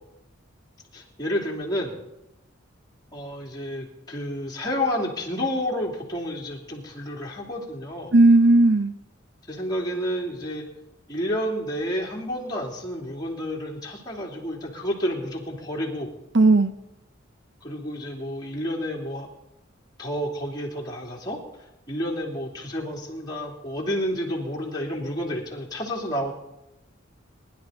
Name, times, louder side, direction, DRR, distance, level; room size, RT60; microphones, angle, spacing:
voice 1, 0.9-2.0 3.1-8.1 9.5-10.6 11.1-16.1 17.6-19.3 20.0-21.4 21.9-26.3, equal, 20° left, -3 dB, 2.8 m, -30 dB
voice 2, 8.1-8.9 16.3-16.7, right 2 dB, 60° right, 10 dB, 0.8 m, -15 dB
22.0 x 11.0 x 3.9 m, 0.90 s
head